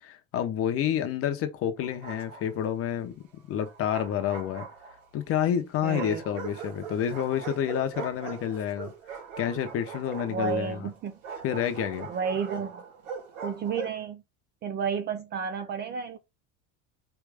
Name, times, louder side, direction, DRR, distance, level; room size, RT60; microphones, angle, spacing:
voice 1, 0.0-3.2 3.5-4.7 5.1-8.9 9.4-10.9 11.4-12.1, left 9 dB, 35° left, 0.9 m, -29 dB
Bark, 1.8-2.7 3.6-5.2 5.9-14.0, right 6 dB, 85° right, 2.9 m, -41 dB
voice 2, 5.8-6.2 10.3-11.1 12.1-12.8 13.4-14.2 14.6-16.2, right 6 dB, 25° right, 0.5 m, -31 dB
4.8 x 3.2 x 3.5 m
cardioid pair, 150°, 40 cm